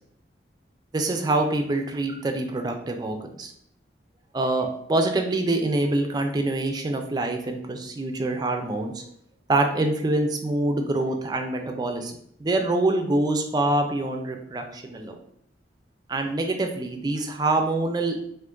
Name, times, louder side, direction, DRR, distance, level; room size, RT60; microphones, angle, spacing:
voice 1, 0.9-3.5 4.3-9.1 9.5-12.1 12.4-15.2 16.1-18.2, right 2 dB, 25° right, 4 dB, 0.3 m, -25 dB
2.5 x 2.4 x 3.6 m, 0.71 s
head